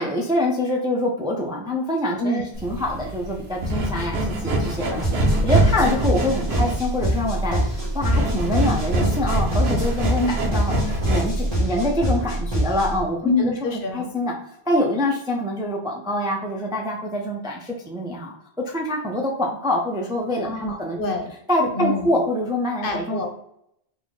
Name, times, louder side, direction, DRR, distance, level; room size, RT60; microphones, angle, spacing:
voice 1, 0.0-13.5 13.9-14.4 14.7-18.4 18.7-21.0 21.5-23.3, left 1 dB, 5° right, -1 dB, 0.3 m, -25 dB
sound 1, 2.6-11.5, right 1 dB, 80° right, 1.0 m, -25 dB
voice 2, 4.8-5.2 5.8-5.9 10.2-10.5 13.2-14.1 20.4-21.3 21.7-22.1 22.8-23.3, left 2 dB, 60° left, 3 dB, 0.9 m, -26 dB
sound 2, 5.0-13.0, right 1 dB, 40° right, 1.7 m, -24 dB
3.9 x 2.6 x 3.1 m, 0.75 s
omnidirectional pair, 1.0 m